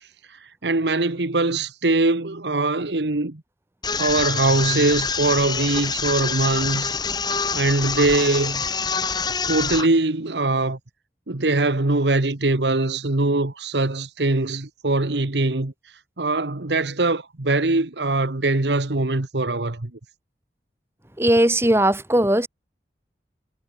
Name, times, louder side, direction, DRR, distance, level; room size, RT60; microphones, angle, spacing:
voice 1, 0.6-3.4 3.9-7.0 7.5-8.6 9.5-10.8 11.3-15.7 16.2-19.9, right 2 dB, 80° right, 1.4 m, -22 dB
sound 1, 3.8-9.9, left 5 dB, 25° left, 3.9 m, -26 dB
voice 2, 21.2-22.5, right 1 dB, 15° right, 2.0 m, -18 dB
head